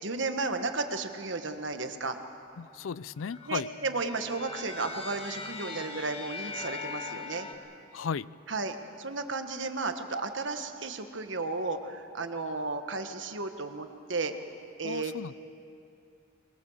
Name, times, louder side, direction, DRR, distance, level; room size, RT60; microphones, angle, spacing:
voice 1, 0.0-2.2 3.5-7.5 8.5-14.3 14.8-15.3, right 3 dB, 65° right, 7 dB, 1.5 m, -34 dB
voice 2, 2.6-3.7 7.9-8.3 14.8-15.3, left 6 dB, 80° left, 19 dB, 0.4 m, -35 dB
sound 1, 2.9-7.5, left 3 dB, 30° left, 1.8 m, -41 dB
24.0 x 21.5 x 7.3 m, 2.6 s
head